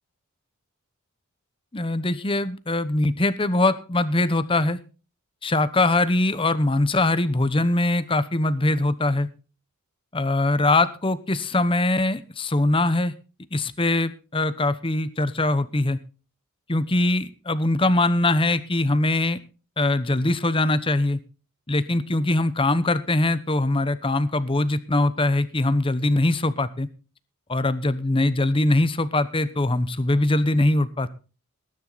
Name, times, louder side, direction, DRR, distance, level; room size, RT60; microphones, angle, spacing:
voice 1, 1.7-4.8 5.4-9.3 10.1-13.1 13.5-16.0 16.7-19.4 19.8-21.2 21.7-26.9 27.5-31.1, left 2 dB, 25° left, 13 dB, 0.9 m, -22 dB
19.0 x 10.5 x 4.1 m, 0.35 s
head